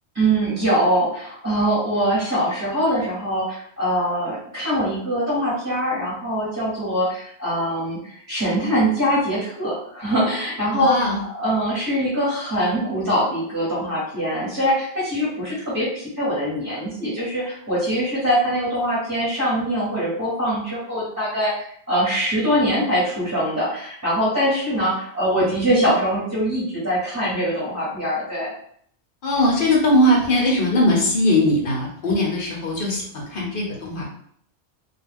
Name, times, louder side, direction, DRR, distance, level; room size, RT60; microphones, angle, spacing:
voice 1, 0.1-10.9 11.3-28.5, equal, 15° right, -8 dB, 0.9 m, -23 dB
voice 2, 10.7-11.2 29.2-34.1, left 1 dB, 55° left, -3 dB, 0.8 m, -20 dB
2.3 x 2.3 x 3.4 m, 0.64 s
omnidirectional pair, 1.2 m